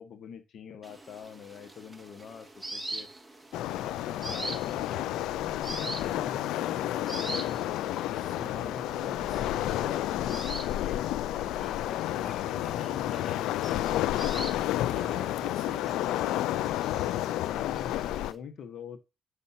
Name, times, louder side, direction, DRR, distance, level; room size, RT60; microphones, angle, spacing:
voice 1, 0.0-3.1 3.7-7.8 8.5-10.5 10.8-11.5 11.9-14.8 15.8-19.0, left 7 dB, 65° left, 1.4 m, -44 dB
sound 1, 0.8-18.4, right 2 dB, 5° right, 1.7 m, -44 dB
Waves surf, 3.5-18.3, left 14 dB, 90° left, 0.3 m, -31 dB
sound 2, 7.0-13.4, equal, 20° left, 3.3 m, -52 dB
voice 2, 8.1-9.4 14.9-16.3, right 7 dB, 55° right, 1.7 m, -50 dB
8.9 x 6.9 x 2.8 m
cardioid pair, 90°, 0 cm